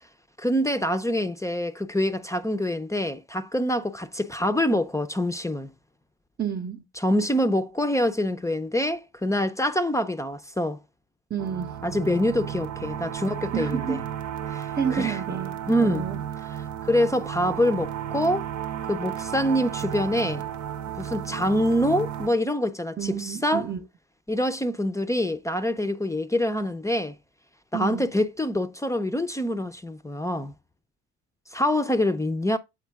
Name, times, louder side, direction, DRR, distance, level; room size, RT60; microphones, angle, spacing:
voice 1, 0.4-5.7 7.0-10.8 11.8-14.0 14.5-15.2 15.7-16.1 16.8-18.4 18.9-20.5 21.0-23.7 24.3-27.2 27.7-30.5 31.5-32.6, left 1 dB, 10° left, 0.5 m, -25 dB
voice 2, 6.4-6.8 11.3-11.8 13.5-14.0 14.8-15.5 15.8-16.2 23.0-23.8 27.7-28.1, right 8 dB, 35° right, 0.8 m, -29 dB
sound 1, 11.4-22.3, right 10 dB, 75° right, 0.8 m, -33 dB
7.4 x 4.3 x 3.3 m
cardioid pair, 90°, 30 cm